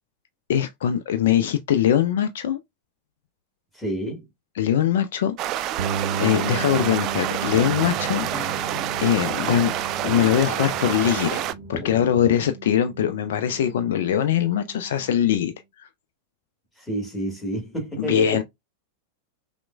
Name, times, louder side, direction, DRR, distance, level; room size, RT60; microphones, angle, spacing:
voice 1, 0.5-2.6 4.6-5.4 6.2-8.7 9.0-9.7 10.0-11.4 11.7-15.5 15.8-15.9 18.0-18.4, left 10 dB, 60° left, 0.4 m, -22 dB
voice 2, 3.7-4.3 16.8-18.4, right 1 dB, 5° left, 1.6 m, -29 dB
sound 1, 5.4-11.5, right 12 dB, 35° right, 0.3 m, -28 dB
sound 2, 5.8-15.5, right 6 dB, 50° right, 0.7 m, -35 dB
sound 3, 7.5-12.5, left 5 dB, 30° left, 1.1 m, -38 dB
5.8 x 2.1 x 2.3 m
figure-of-eight pair, 90°, 0 cm